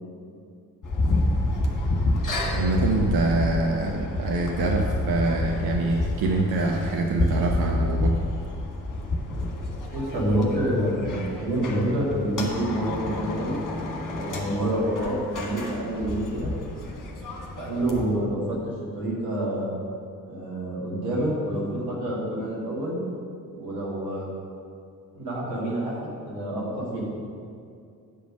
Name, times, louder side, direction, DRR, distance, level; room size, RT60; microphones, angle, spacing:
sound 1, 0.8-18.0, left 2 dB, 40° left, 1.7 m, -29 dB
voice 1, 2.5-8.2, right 2 dB, 45° right, 1 dB, 0.9 m, -25 dB
voice 2, 9.9-13.6 14.1-16.5 17.6-18.6 19.0-19.7 20.3-23.0 23.6-24.3 25.1-27.0, right 1 dB, 75° right, -5 dB, 2.1 m, -27 dB
8.7 x 5.1 x 6.2 m, 2.4 s
figure-of-eight pair, 40°, 49 cm